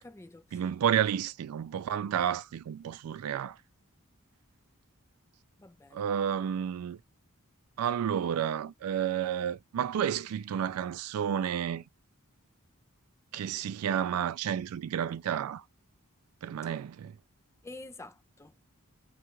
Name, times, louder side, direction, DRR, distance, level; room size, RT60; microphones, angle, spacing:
voice 1, 0.0-0.7 5.6-6.0 17.6-18.7, left 2 dB, 10° left, 0.3 m, -49 dB
voice 2, 0.5-3.6 5.9-7.0 7.8-11.8 13.3-15.6 16.4-17.2, right 9 dB, 75° right, 0.3 m, -31 dB
2.4 x 2.2 x 2.9 m
head